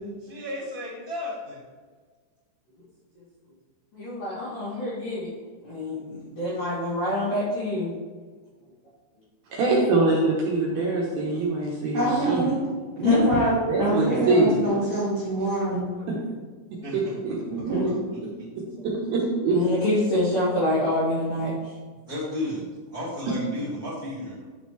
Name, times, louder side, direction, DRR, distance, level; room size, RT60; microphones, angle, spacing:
voice 1, 0.2-1.6 16.8-17.2 17.8-18.2 22.1-22.6 22.9-24.3, left 1 dB, 80° left, -12 dB, 0.8 m, -33 dB
voice 2, 3.9-5.3 5.6-7.9 13.0-13.3 16.0-16.1 19.5-21.5 24.2-24.3, left 1 dB, 55° left, -11 dB, 2.9 m, -26 dB
voice 3, 9.5-12.5 13.7-14.6 16.9-17.3 19.1-19.6, right 2 dB, 75° right, -4 dB, 2.3 m, -23 dB
voice 4, 11.9-12.6 13.0-13.5 13.8-15.8 17.5-17.8, right 2 dB, 50° right, -9 dB, 2.7 m, -25 dB
10.5 x 5.0 x 3.3 m, 1.5 s
omnidirectional pair, 5.7 m